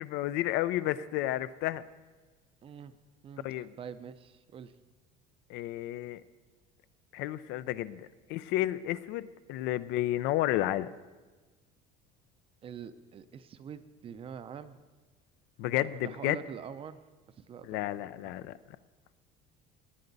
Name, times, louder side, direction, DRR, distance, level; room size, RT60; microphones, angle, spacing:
voice 1, 0.0-1.8 3.4-3.7 5.5-6.2 7.1-8.0 8.3-10.9 15.6-16.4 17.7-18.5, left 14 dB, 70° left, 15 dB, 0.5 m, -31 dB
voice 2, 2.6-2.9 3.2-4.7 12.6-14.8 16.0-17.0 17.4-17.8 18.2-18.3, right 7 dB, 30° right, 12 dB, 0.5 m, -45 dB
18.5 x 9.7 x 4.0 m, 1.3 s
cardioid pair, 155°, 19 cm